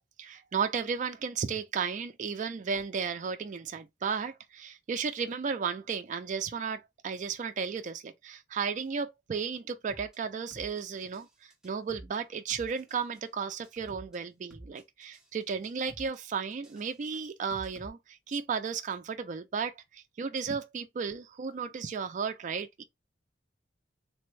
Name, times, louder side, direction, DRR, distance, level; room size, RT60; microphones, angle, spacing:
voice 1, 0.2-22.8, right 6 dB, 40° right, 0.4 m, -34 dB
sound 1, 9.9-10.2 10.5-11.3 11.5-12.2 12.5-13.2 13.5-14.2 14.5-15.3 15.5-16.2 16.5-17.9, right 1 dB, 5° right, 0.8 m, -49 dB
3.3 x 2.1 x 3.1 m
head